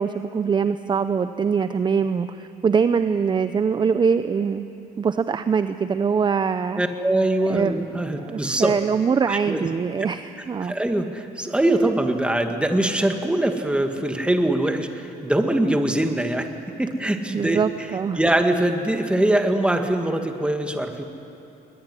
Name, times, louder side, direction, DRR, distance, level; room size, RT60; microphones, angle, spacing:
voice 1, 0.0-4.7 5.0-6.8 7.5-7.8 8.2-10.7 17.3-18.2, right 6 dB, 25° right, 11 dB, 0.7 m, -23 dB
voice 2, 6.8-8.7 9.3-9.7 10.6-16.5 16.8-17.6 18.2-21.0, right 1 dB, 5° right, 5 dB, 2.0 m, -22 dB
21.5 x 21.0 x 9.9 m, 2.8 s
cardioid pair, 110°, 17 cm